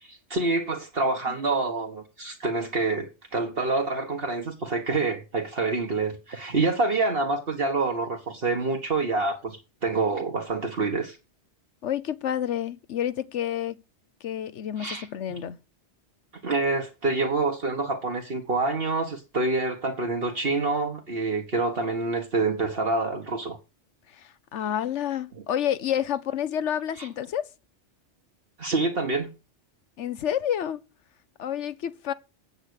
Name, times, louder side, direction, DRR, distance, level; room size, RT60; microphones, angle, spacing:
voice 1, 0.0-11.2 14.8-15.4 16.4-23.6 27.0-27.1 28.6-29.3, right 3 dB, 55° right, 1.6 m, -27 dB
voice 2, 11.8-13.8 14.2-15.6 24.1-27.5 30.0-30.8 31.4-32.1, left 10 dB, 80° left, 1.1 m, -29 dB
8.7 x 8.2 x 6.5 m
omnidirectional pair, 1.2 m